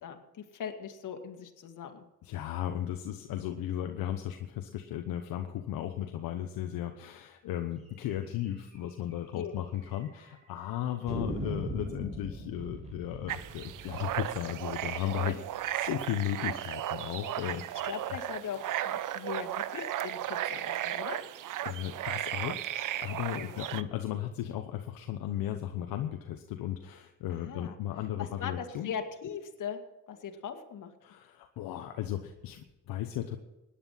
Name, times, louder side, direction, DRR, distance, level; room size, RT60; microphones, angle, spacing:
voice 1, 0.0-2.0 9.3-9.5 15.0-15.4 17.8-21.2 23.3-23.5 27.3-27.8 28.2-29.8 30.1-30.9, left 7 dB, 65° left, 6 dB, 2.1 m, -40 dB
voice 2, 2.2-15.4 15.8-17.8 21.6-28.9 31.0-33.4, left 11 dB, 80° left, 5 dB, 1.0 m, -35 dB
sound 1, 8.3-8.4 8.7-8.8 9.1-9.2 9.8-10.4 11.1-15.9, equal, 20° right, 6.1 m, -40 dB
sound 2, 13.3-23.8, right 12 dB, 65° right, 0.7 m, -35 dB
17.0 x 10.5 x 5.8 m, 1.0 s
cardioid pair, 75°, 34 cm